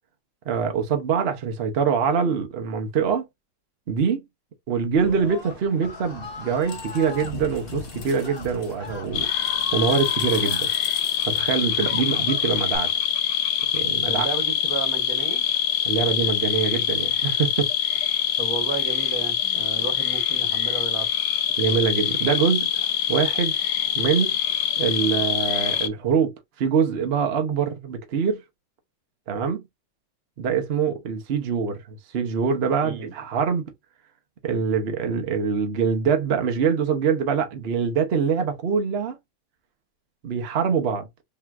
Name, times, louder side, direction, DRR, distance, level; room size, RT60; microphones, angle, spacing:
voice 1, 0.5-3.3 3.9-4.2 4.7-9.3 9.7-10.7 11.2-12.9 13.7-14.3 15.8-17.7 21.6-23.6 23.9-24.4 24.8-28.4 29.3-29.6 30.4-33.6 34.4-39.2 40.2-41.1, right 6 dB, 75° right, 0.5 m, -24 dB
Screaming, 4.9-7.3 8.1-8.4 8.8-10.8 11.4-12.8, left 4 dB, 25° left, 2.1 m, -38 dB
sound 1, 5.0-12.4, left 3 dB, 45° left, 0.7 m, -40 dB
sound 2, 9.1-25.9, left 9 dB, 70° left, 1.1 m, -24 dB
voice 2, 14.0-15.4 18.4-21.1 32.8-33.1, right 5 dB, 50° right, 1.2 m, -33 dB
5.4 x 2.9 x 2.3 m
omnidirectional pair, 2.3 m